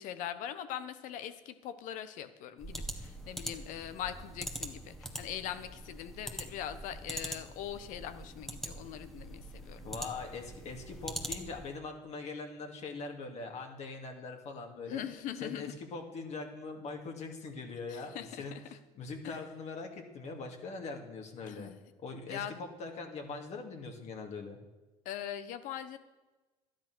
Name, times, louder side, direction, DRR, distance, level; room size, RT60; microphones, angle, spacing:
voice 1, 0.0-9.9 14.9-15.7 17.9-18.6 19.2-19.4 21.5-21.8 22.3-22.6 25.0-26.0, left 10 dB, 70° left, 12 dB, 1.1 m, -41 dB
sound 1, 2.6-11.7, equal, 5° left, 1.7 m, -43 dB
voice 2, 9.8-15.0 15.4-21.7 22.0-24.6, left 4 dB, 55° left, 3 dB, 2.5 m, -42 dB
12.5 x 10.5 x 6.3 m, 1.2 s
supercardioid pair, 85°, 14 cm